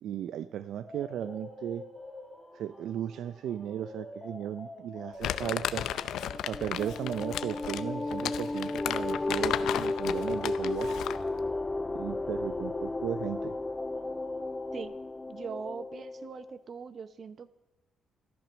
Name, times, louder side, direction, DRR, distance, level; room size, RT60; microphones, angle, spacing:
voice 1, 0.0-1.8 2.5-5.9 6.5-10.9 11.9-13.5, right 10 dB, 75° right, 13 dB, 0.5 m, -36 dB
sound 1, 0.8-14.8, left 1 dB, 10° right, 4.8 m, -47 dB
Crumpling crinkling, 5.2-11.3, left 11 dB, 80° left, 0.6 m, -34 dB
sound 2, 6.3-16.5, left 2 dB, 20° left, 0.4 m, -34 dB
voice 2, 15.3-17.5, right 6 dB, 50° right, 14 dB, 0.9 m, -41 dB
13.5 x 13.5 x 6.2 m, 1.0 s
cardioid pair, 90°, 0 cm